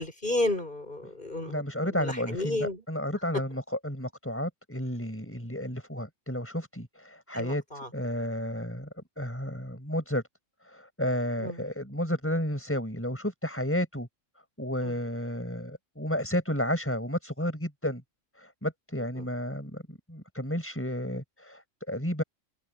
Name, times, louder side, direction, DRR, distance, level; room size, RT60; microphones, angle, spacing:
voice 1, 0.0-1.6 1.9-2.8 7.3-7.9 11.4-11.6 14.8-14.9 19.2-19.3, left 2 dB, 40° left, 5.5 m, -32 dB
voice 2, 1.5-7.6 7.9-8.9 9.2-10.2 10.7-14.1 14.6-18.0 18.4-22.2, equal, 10° left, 6.1 m, -32 dB
omnidirectional pair, 1.4 m